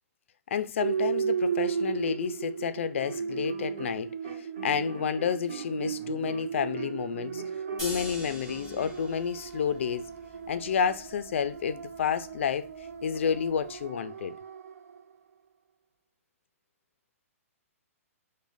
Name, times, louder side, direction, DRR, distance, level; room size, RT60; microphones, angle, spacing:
voice 1, 0.5-4.1 4.6-7.4 7.8-10.1 10.5-12.7 13.0-14.3, left 7 dB, 55° left, 0.3 m, -30 dB
sound 1, 0.8-15.0, right 7 dB, 70° right, 0.3 m, -35 dB
sound 2, 2.8-4.0 4.2-9.0, right 2 dB, 45° right, 1.6 m, -46 dB
sound 3, 7.8-13.8, equal, 10° right, 1.1 m, -45 dB
5.0 x 2.1 x 2.5 m
hypercardioid pair, 175°, 8 cm